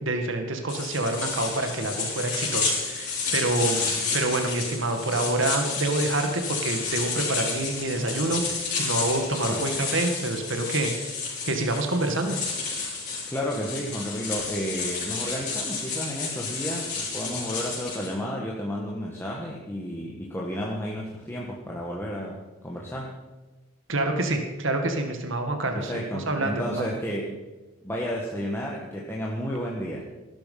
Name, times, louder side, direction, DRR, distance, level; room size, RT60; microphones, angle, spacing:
voice 1, 0.0-12.4 23.9-26.6, right 2 dB, 60° right, 5 dB, 1.9 m, -27 dB
sound 1, 0.7-18.1, left 4 dB, 35° left, 5.6 m, -31 dB
voice 2, 13.3-23.2 25.7-27.3 27.8-30.0, equal, 10° left, -3 dB, 1.6 m, -32 dB
18.0 x 12.0 x 5.6 m, 1.2 s
head